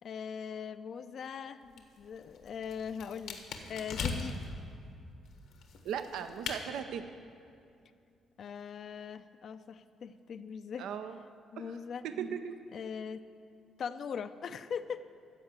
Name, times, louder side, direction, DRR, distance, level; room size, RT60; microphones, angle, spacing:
voice 1, 0.0-3.4 3.7-4.4 8.4-10.9 11.5-12.1 12.7-13.2 13.8-15.1, left 6 dB, 60° left, 11 dB, 0.4 m, -40 dB
sound 1, 1.6-4.5 5.3-6.6, left 5 dB, 80° left, 1.2 m, -40 dB
voice 2, 5.8-7.0 10.8-11.2 11.6-11.7 12.0-12.5, right 8 dB, 85° right, 8 dB, 0.5 m, -37 dB
14.5 x 4.9 x 8.1 m, 2.5 s
cardioid pair, 90°, 0 cm